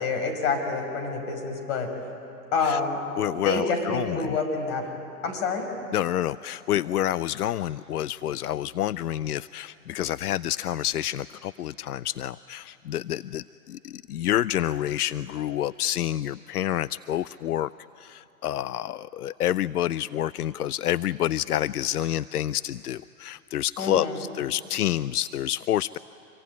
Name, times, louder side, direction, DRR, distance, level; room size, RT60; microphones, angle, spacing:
voice 1, 0.0-1.9 2.5-3.0 3.4-4.9 5.2-5.7 23.8-24.2, left 4 dB, 50° left, 4 dB, 6.1 m, -27 dB
voice 2, 3.2-4.4 5.9-17.7 18.0-26.0, left 12 dB, 90° left, 18 dB, 0.5 m, -28 dB
26.0 x 23.5 x 9.6 m, 2.8 s
hypercardioid pair, 115°, 44 cm